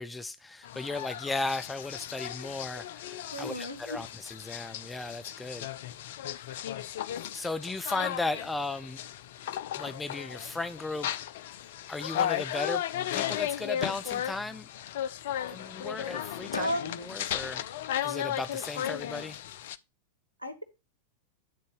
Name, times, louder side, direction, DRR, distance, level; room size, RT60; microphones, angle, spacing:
voice 1, 0.0-5.7 7.3-9.0 9.8-11.1 11.9-12.8 13.1-14.7 15.5-16.7 17.0-17.6 18.0-19.4, left 3 dB, 10° left, 0.6 m, -35 dB
sound 1, 0.6-19.8, left 11 dB, 55° left, 0.5 m, -35 dB
voice 2, 3.3-4.1 16.5-17.1 20.4-20.6, equal, 90° left, 1.3 m, -34 dB
9.4 x 3.9 x 4.7 m
figure-of-eight pair, 90°, 0 cm